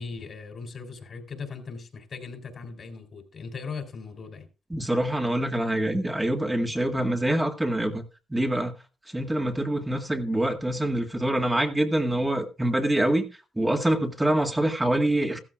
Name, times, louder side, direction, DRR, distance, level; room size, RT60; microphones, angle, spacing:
voice 1, 0.0-4.5, left 5 dB, 50° left, 3.8 m, -38 dB
voice 2, 4.7-8.0 8.3-8.8 9.1-13.3 13.6-15.4, right 1 dB, 10° right, 1.8 m, -25 dB
15.0 x 13.5 x 2.4 m
supercardioid pair, 60°, 0 cm